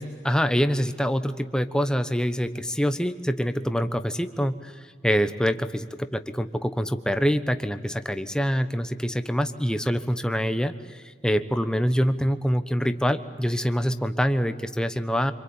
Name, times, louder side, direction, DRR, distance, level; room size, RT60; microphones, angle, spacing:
voice 1, 0.0-15.3, equal, 5° left, 9 dB, 1.1 m, -25 dB
26.5 x 25.5 x 8.8 m, 1.6 s
head